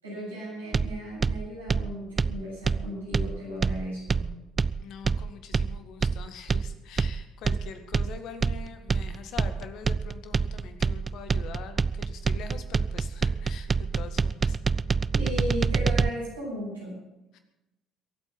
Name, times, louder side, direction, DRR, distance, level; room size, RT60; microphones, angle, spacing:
voice 1, 0.0-4.2 15.1-16.9, equal, 90° right, -8 dB, 7.7 m, -35 dB
sound 1, 0.7-16.1, right 4 dB, 30° right, 0.4 m, -27 dB
voice 2, 4.8-14.6 17.3-17.4, left 6 dB, 60° left, 7 dB, 1.8 m, -44 dB
23.0 x 8.6 x 6.0 m, 0.98 s
figure-of-eight pair, 55°, 0 cm